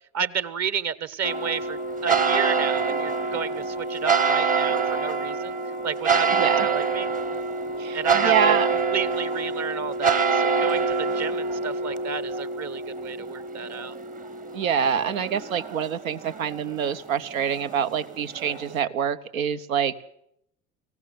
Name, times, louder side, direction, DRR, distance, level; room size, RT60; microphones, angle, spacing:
voice 1, 0.1-5.6 5.8-7.1 7.9-14.0, right 6 dB, 40° right, 16 dB, 1.4 m, -31 dB
sound 1, 1.2-18.8, right 4 dB, 20° right, 1.1 m, -26 dB
voice 2, 7.8-8.7 14.5-19.9, right 8 dB, 75° right, 12 dB, 1.2 m, -26 dB
25.0 x 16.5 x 9.4 m, 0.76 s
hypercardioid pair, 75°, 41 cm